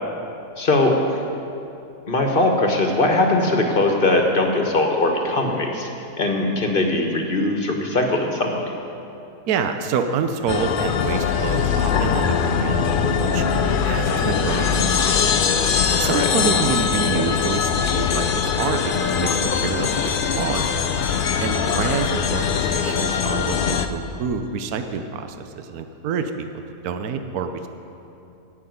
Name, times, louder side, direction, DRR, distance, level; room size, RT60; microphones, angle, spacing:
voice 1, 0.6-1.2 2.1-5.9 6.2-8.7 14.0-14.2 16.1-16.3 21.6-21.8, left 2 dB, 35° left, 2 dB, 1.4 m, -20 dB
voice 2, 9.5-13.4 13.8-15.2 15.9-19.3 19.6-20.0 20.3-20.7 21.4-26.5 26.8-27.7, right 6 dB, 75° right, 7 dB, 1.2 m, -27 dB
sound 1, 10.5-23.9, left 6 dB, 75° left, 0.4 m, -21 dB
15.0 x 5.9 x 9.2 m, 2.8 s
omnidirectional pair, 1.7 m